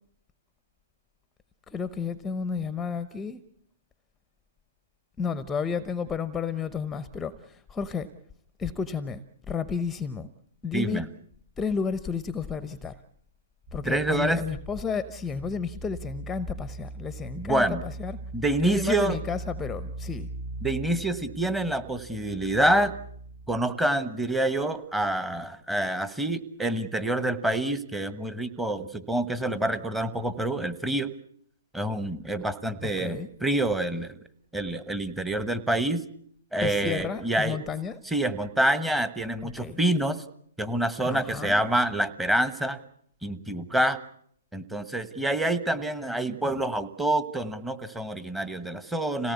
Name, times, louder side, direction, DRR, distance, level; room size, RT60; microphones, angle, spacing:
voice 1, 1.7-3.4 5.2-8.1 8.6-9.2 9.5-10.3 10.6-11.0 11.6-13.0 13.7-18.2 18.6-20.3 32.8-33.3 36.6-38.0 39.4-39.8 41.0-41.7, left 6 dB, 10° left, 14 dB, 0.9 m, -32 dB
voice 2, 10.7-11.0 13.8-14.4 17.3-17.8 18.3-19.2 20.6-22.9 23.5-31.1 31.7-34.1 34.5-36.0 36.5-37.6 38.1-40.2 40.6-42.8 43.2-44.0 44.5-49.3, right 1 dB, 5° right, 12 dB, 1.3 m, -27 dB
sound 1, 13.7-23.6, right 2 dB, 55° right, 2.8 m, -40 dB
26.5 x 18.0 x 8.3 m, 0.67 s
hypercardioid pair, 140°, 0 cm